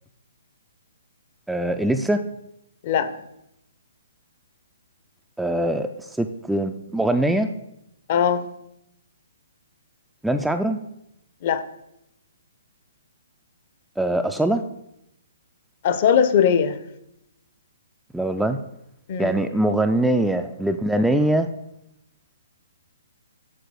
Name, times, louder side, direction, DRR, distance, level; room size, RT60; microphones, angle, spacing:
voice 1, 1.5-2.2 5.4-7.5 10.2-10.8 14.0-14.6 18.1-18.6 19.2-21.5, right 1 dB, ahead, 6 dB, 0.3 m, -22 dB
voice 2, 8.1-8.4 11.4-11.6 15.8-16.8 19.1-19.3, left 8 dB, 40° left, 11 dB, 0.6 m, -19 dB
7.8 x 3.9 x 6.2 m, 0.81 s
figure-of-eight pair, 125°, 0 cm